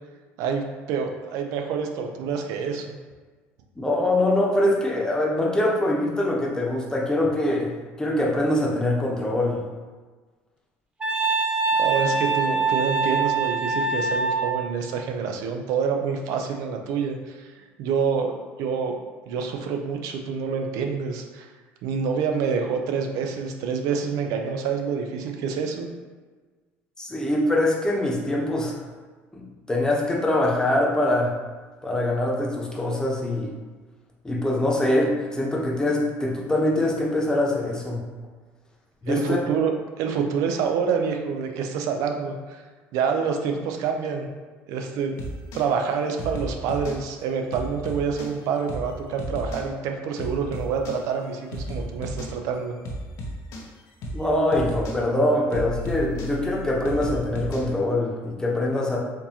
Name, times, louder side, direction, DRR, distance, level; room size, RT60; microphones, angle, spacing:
voice 1, 0.4-3.0 11.8-17.5 17.8-18.3 18.6-19.0 19.3-21.5 21.8-25.9 39.1-39.7 40.0-42.6 42.9-44.3 44.7-45.1 45.5-52.7, right 6 dB, 70° right, 4 dB, 0.5 m, -27 dB
voice 2, 3.8-7.7 8.0-9.6 27.0-28.8 29.3-31.3 31.8-33.5 34.2-38.0 39.0-39.4 54.1-59.0, left 1 dB, 10° left, -3 dB, 0.9 m, -23 dB
Wind instrument woodwind instrument, 11.0-14.7, right 4 dB, 20° right, 0.6 m, -24 dB
sound 1, 45.2-45.6 46.2-47.0 47.5-48.3 48.7-48.9 49.2-49.6 50.2-51.0 51.5-52.3 52.8-53.6 54.0-54.2 54.5-55.0 55.5-57.7, equal, 65° left, 0.8 m, -33 dB
4.4 x 2.7 x 2.9 m, 1.4 s
supercardioid pair, 80°, 6 cm